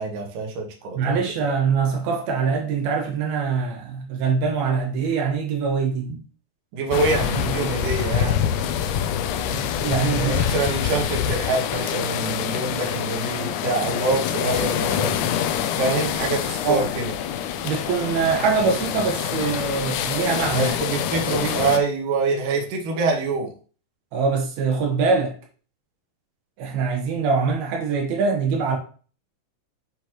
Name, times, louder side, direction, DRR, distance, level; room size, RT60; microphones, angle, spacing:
voice 1, 0.0-1.5 6.7-8.5 10.2-15.2 15.8-17.1 20.6-23.5, right 3 dB, 65° right, 2.9 m, -25 dB
voice 2, 0.9-6.2 7.3-7.7 9.5-10.4 16.6-16.9 17.6-20.7 24.1-25.4 26.6-28.8, right 5 dB, 90° right, 3.3 m, -23 dB
sound 1, 6.9-21.8, left 9 dB, 90° left, 1.7 m, -26 dB
8.3 x 6.3 x 3.0 m
omnidirectional pair, 4.3 m